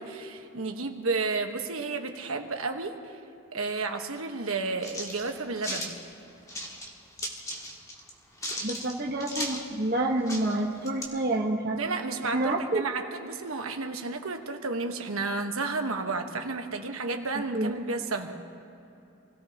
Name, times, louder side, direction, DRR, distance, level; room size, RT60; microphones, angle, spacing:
voice 1, 0.0-3.0 3.5-6.0 11.7-18.4, right 3 dB, 80° right, 4 dB, 1.3 m, -32 dB
sound 1, 4.8-5.9 6.5-6.9 7.2-8.1 8.4-9.7 10.0-10.1 10.3-11.0, equal, 15° left, 1.7 m, -36 dB
voice 2, 8.6-11.8 12.3-12.8 17.5-17.7, right 2 dB, 45° right, -1 dB, 1.3 m, -28 dB
27.5 x 17.5 x 2.9 m, 2.8 s
head